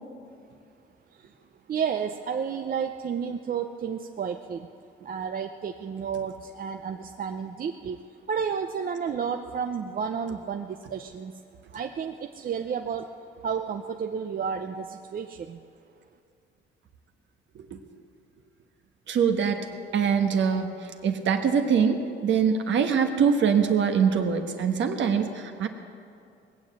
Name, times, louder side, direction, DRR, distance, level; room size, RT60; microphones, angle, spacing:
voice 1, 1.7-4.7 5.0-8.0 8.3-11.4 11.7-13.1 13.4-15.6, right 7 dB, 45° right, 5 dB, 0.6 m, -31 dB
voice 2, 19.1-19.6 19.9-20.7 21.0-25.7, right 6 dB, 70° right, 5 dB, 1.3 m, -23 dB
19.5 x 7.3 x 8.1 m, 2.4 s
cardioid pair, 90°, 20 cm